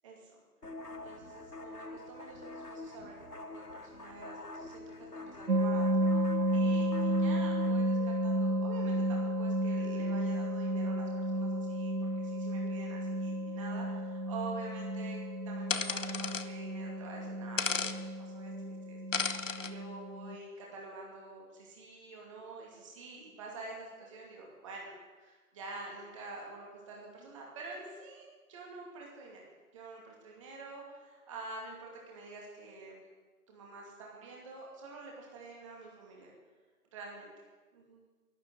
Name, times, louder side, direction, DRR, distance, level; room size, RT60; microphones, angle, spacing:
sound 1, 0.6-7.8, left 2 dB, 90° left, 1.3 m, -46 dB
voice 1, 0.9-3.2 3.5-6.0 6.5-15.2 15.4-24.9 25.2-29.4 29.7-33.0 33.5-36.3 36.9-37.3 37.7-38.0, right 3 dB, 20° right, -2 dB, 2.4 m, -47 dB
sound 2, 5.5-20.4, equal, 80° right, 0.8 m, -32 dB
sound 3, 15.7-16.5 17.6-18.0 19.1-19.7, left 5 dB, 55° left, 1.0 m, -33 dB
12.5 x 12.5 x 7.8 m, 1.4 s
figure-of-eight pair, 145°, 45 cm